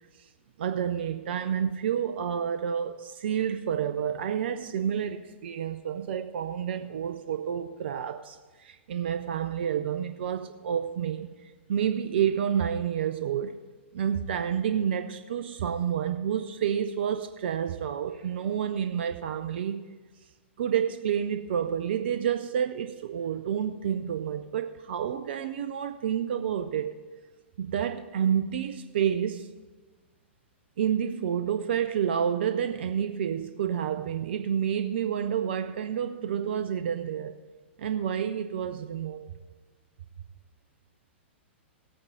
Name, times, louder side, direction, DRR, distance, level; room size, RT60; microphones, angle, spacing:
voice 1, 0.6-11.3 11.7-13.6 13.9-19.8 20.6-26.9 27.6-29.5 30.8-37.4 37.8-39.3, right 8 dB, 60° right, 7 dB, 0.6 m, -29 dB
17.5 x 8.7 x 2.7 m, 1.3 s
figure-of-eight pair, 110°, 7 cm